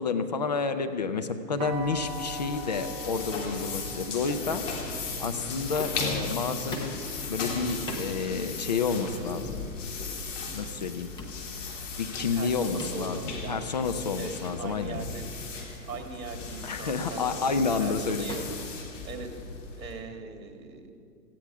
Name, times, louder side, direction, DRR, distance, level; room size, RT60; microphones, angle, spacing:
voice 1, 0.0-4.6 5.2-7.0 7.3-9.4 10.5-11.1 12.0-13.2 13.5-15.0 16.6-18.6, left 4 dB, 25° left, 7 dB, 0.5 m, -30 dB
sound 1, 1.6-20.0, left 4 dB, 45° left, 3.2 m, -37 dB
sound 2, 1.6-7.4, right 2 dB, 15° right, 0.9 m, -42 dB
sound 3, 5.7-6.2 6.7-7.1 7.9-8.1 8.9-9.1 10.0-10.2 11.2-11.4 12.8-13.2 14.4-14.6 15.0-15.2 15.9-16.2 17.1-17.3 18.3-19.5, left 2 dB, 10° left, 1.1 m, -41 dB
voice 2, 12.3-13.6 14.1-15.2 15.8-18.4 19.0-19.3 19.8-20.9, right 5 dB, 55° right, 4 dB, 2.4 m, -40 dB
18.0 x 15.0 x 4.8 m, 2.3 s
hypercardioid pair, 135°, 50 cm